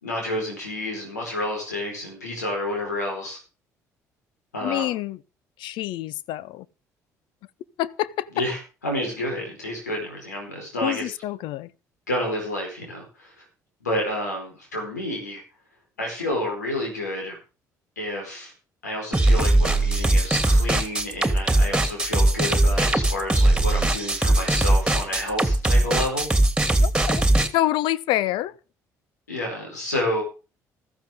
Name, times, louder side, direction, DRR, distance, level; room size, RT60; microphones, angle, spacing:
voice 1, 0.0-3.4 4.5-4.9 8.3-11.1 12.1-13.3 13.8-15.4 16.0-17.4 18.0-18.5 18.8-26.3 29.3-30.2, left 1 dB, 90° left, 4.7 m, -29 dB
voice 2, 4.6-5.2 5.6-6.6 7.8-8.3 10.8-11.7 26.8-27.2 27.5-28.5, left 14 dB, 65° left, 0.8 m, -26 dB
sound 1, 19.1-27.5, right 1 dB, 10° right, 2.9 m, -20 dB
15.0 x 14.5 x 3.8 m
figure-of-eight pair, 50°, 9 cm